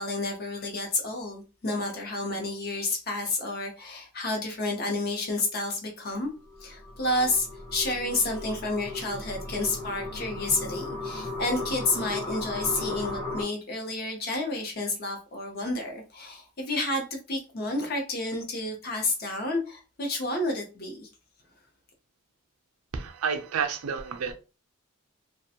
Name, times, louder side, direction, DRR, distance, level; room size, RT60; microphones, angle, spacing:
voice 1, 0.0-6.3 6.6-21.1, left 2 dB, 45° left, 2 dB, 0.7 m, -30 dB
sound 1, 6.5-13.4, left 2 dB, 5° left, 0.7 m, -36 dB
voice 2, 22.9-24.3, right 6 dB, 90° right, 6 dB, 0.4 m, -30 dB
2.4 x 2.2 x 2.7 m, 0.33 s
head